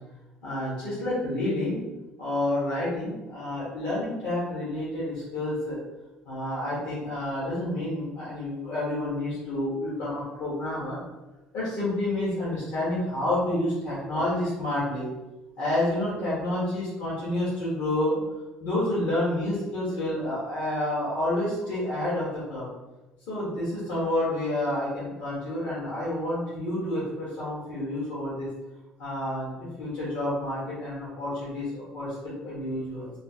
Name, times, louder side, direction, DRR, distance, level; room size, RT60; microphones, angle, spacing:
voice 1, 0.4-1.8 2.2-5.8 6.2-11.0 11.5-15.1 15.6-18.2 18.6-22.7 23.3-28.5 29.0-33.1, left 1 dB, 55° left, -9 dB, 1.5 m, -29 dB
3.9 x 2.0 x 3.9 m, 1.1 s
cardioid pair, 150°, 3 cm